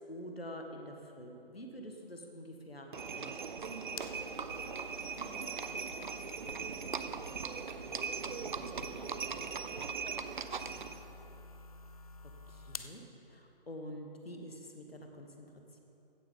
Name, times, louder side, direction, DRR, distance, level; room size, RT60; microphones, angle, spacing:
voice 1, 0.1-3.4 3.7-3.9 12.5-13.0 13.3-15.5, equal, 85° left, 3 dB, 1.5 m, -47 dB
Livestock farm animals working animals, 2.9-11.0, right 5 dB, 55° right, 0.5 m, -39 dB
sound 1, 3.4-13.0, left 4 dB, 40° left, 0.5 m, -52 dB
voice 2, 5.1-5.5 6.2-9.9 10.4-11.4, left 1 dB, ahead, -13 dB, 2.6 m, -59 dB
15.5 x 8.3 x 3.8 m, 2.9 s
figure-of-eight pair, 145°, 29 cm